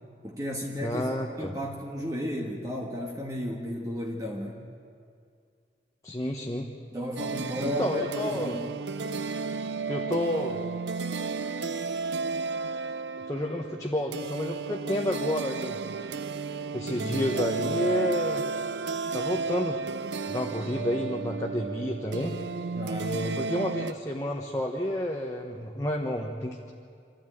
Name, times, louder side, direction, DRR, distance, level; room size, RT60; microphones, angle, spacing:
voice 1, 0.2-4.7 6.9-8.7 22.7-23.1, left 1 dB, 20° right, -1 dB, 1.6 m, -34 dB
voice 2, 0.8-1.6 6.0-6.7 7.8-8.5 9.9-10.6 13.3-15.8 16.7-18.4 19.1-19.8 20.3-22.3 23.0-26.7, left 1 dB, 20° left, -1 dB, 1.3 m, -30 dB
sound 1, 7.2-23.9, right 4 dB, 90° right, 0.7 m, -33 dB
25.5 x 13.5 x 9.4 m, 2.3 s
head